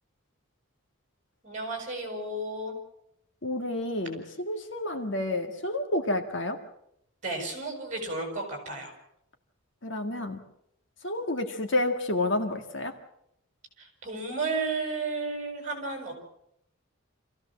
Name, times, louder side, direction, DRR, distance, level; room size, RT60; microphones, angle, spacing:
voice 1, 1.4-2.7 7.2-8.9 13.8-16.1, right 3 dB, 35° right, 3 dB, 6.8 m, -33 dB
voice 2, 3.4-6.6 9.8-10.4 11.0-12.9, left 1 dB, 60° left, 5 dB, 1.9 m, -30 dB
27.0 x 16.0 x 7.4 m, 0.78 s
head